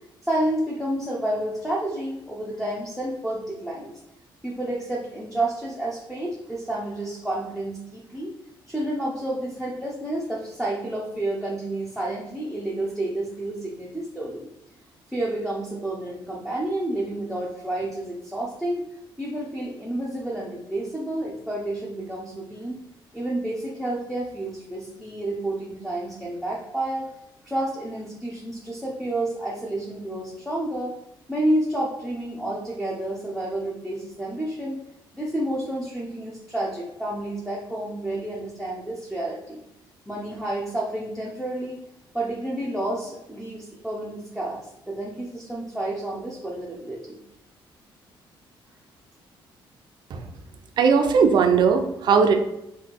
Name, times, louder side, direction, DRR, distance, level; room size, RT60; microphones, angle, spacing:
voice 1, 0.3-3.9 4.4-8.3 8.7-14.5 15.1-18.8 19.2-22.8 23.1-27.1 27.5-30.9 31.3-34.8 35.1-39.6 40.1-41.8 42.1-47.2, right 1 dB, ahead, -4 dB, 0.6 m, -30 dB
voice 2, 50.8-52.4, right 5 dB, 55° right, 5 dB, 0.5 m, -18 dB
4.0 x 2.3 x 4.6 m, 0.85 s
cardioid pair, 135°, 9 cm